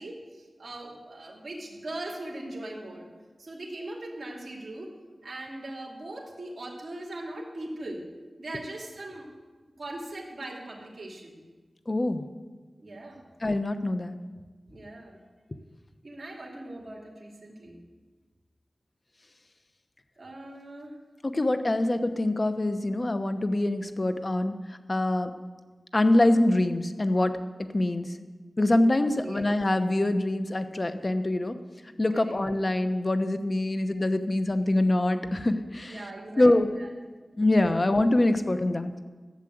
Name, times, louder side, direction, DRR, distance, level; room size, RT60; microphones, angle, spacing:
voice 1, 0.0-3.0 3.4-4.9 5.2-8.1 8.4-9.3 9.8-11.4 12.8-13.2 14.7-15.2 16.0-17.8 20.2-21.0 29.1-29.4 32.1-32.3 35.9-36.9, right 1 dB, 55° right, -1 dB, 2.5 m, -40 dB
voice 2, 11.9-12.3 13.4-14.2 21.2-24.6 24.9-25.3 25.9-27.3 27.7-28.1 28.6-31.6 32.0-36.1 36.4-36.7 37.4-38.9, left 1 dB, 35° left, 9 dB, 0.9 m, -24 dB
12.5 x 7.3 x 7.9 m, 1.3 s
wide cardioid pair, 65°, 0 cm